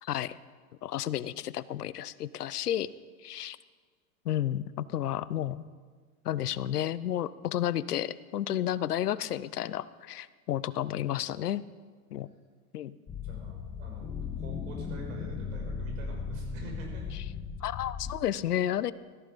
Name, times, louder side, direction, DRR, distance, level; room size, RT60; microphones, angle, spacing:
voice 1, 0.0-0.4 0.8-2.9 3.2-3.6 4.3-5.6 6.2-11.6 12.1-12.3 12.7-12.9 17.6-18.9, left 11 dB, 85° left, 17 dB, 0.8 m, -31 dB
sound 1, 13.1-18.1, left 5 dB, 15° left, 1.3 m, -37 dB
voice 2, 13.2-14.1 14.4-17.0, right 2 dB, 60° right, 0 dB, 6.2 m, -46 dB
17.0 x 14.5 x 5.2 m, 1.5 s
hypercardioid pair, 115°, 45 cm